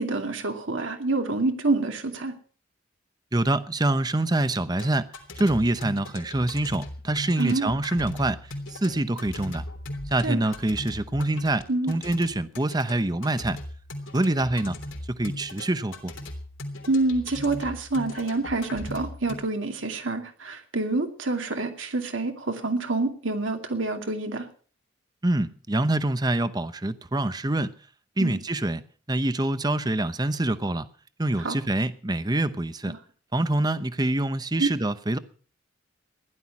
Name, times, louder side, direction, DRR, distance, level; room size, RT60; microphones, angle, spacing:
voice 1, 0.0-2.3 7.4-7.7 10.2-10.4 11.7-11.9 16.9-24.4 28.2-28.4 31.4-31.6 32.9-33.0 34.6-34.7, right 2 dB, 80° right, 4 dB, 2.5 m, -27 dB
voice 2, 3.3-5.1 5.4-8.4 8.7-9.6 10.1-13.6 14.1-14.8 15.1-16.1 25.2-27.7 28.2-28.8 29.1-30.9 31.2-32.9 33.3-35.2, right 1 dB, 20° right, 13 dB, 0.8 m, -25 dB
sound 1, 4.8-19.4, left 1 dB, 85° left, 3.3 m, -38 dB
15.5 x 11.5 x 5.9 m, 0.43 s
head